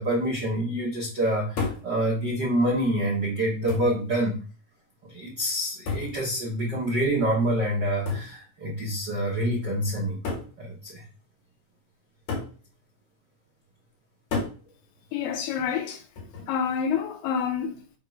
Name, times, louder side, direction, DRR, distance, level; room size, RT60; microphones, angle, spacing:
voice 1, 0.0-4.4 5.0-10.2 10.6-11.0, right 1 dB, 80° right, 0.9 m, -26 dB
sound 1, 1.6-1.9 2.9-3.0 3.7-4.0 5.9-6.2 8.1-8.3 9.4-9.5 10.2-10.5 12.3-12.6 14.3-14.6 16.2-16.5, left 4 dB, 60° left, 3.4 m, -31 dB
voice 2, 15.1-16.0 16.5-17.8, left 7 dB, 80° left, 2.1 m, -28 dB
6.4 x 3.1 x 5.3 m
omnidirectional pair, 4.3 m